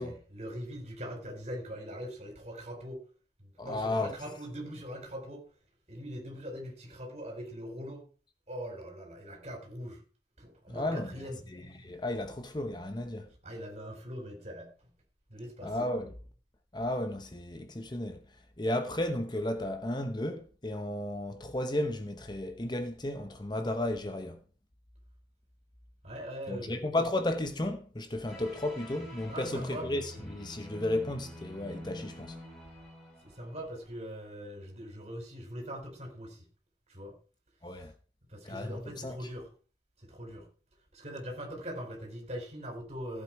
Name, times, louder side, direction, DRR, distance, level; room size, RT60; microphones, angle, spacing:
voice 1, 0.0-3.0 3.4-5.5 5.9-8.0 8.5-10.0 10.4-11.4 13.4-14.7 15.3-15.8 26.0-26.8 29.3-29.9 33.2-36.4 36.9-37.1 38.3-39.5 40.0-40.5 40.9-43.2, equal, 40° right, 4.5 m, -41 dB
voice 2, 3.6-4.2 10.7-11.2 11.5-13.3 15.6-16.1 16.7-18.2 18.6-24.4 26.5-32.4 37.6-37.9 38.4-39.2, left 1 dB, 25° left, 0.9 m, -33 dB
sound 1, 28.3-34.0, equal, 5° left, 6.5 m, -47 dB
15.0 x 8.4 x 4.6 m
head